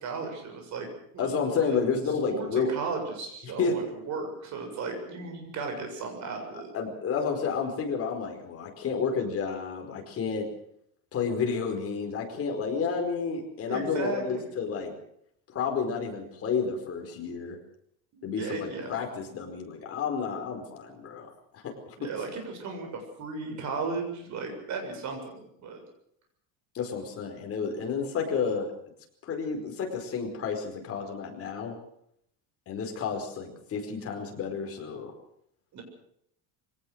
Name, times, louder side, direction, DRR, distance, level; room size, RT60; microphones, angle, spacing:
voice 1, 0.0-1.3 1.6-1.8 2.3-6.7 13.7-14.4 18.1-19.0 22.0-25.8 35.7-35.8, right 4 dB, 45° right, 4 dB, 7.3 m, -35 dB
voice 2, 1.2-2.7 3.6-3.8 6.7-10.5 11.1-14.9 15.5-17.6 18.2-21.9 26.7-28.7 29.3-31.7 32.7-35.1, left 5 dB, 35° left, 3 dB, 4.9 m, -31 dB
24.0 x 18.0 x 6.5 m, 0.70 s
cardioid pair, 155°, 40 cm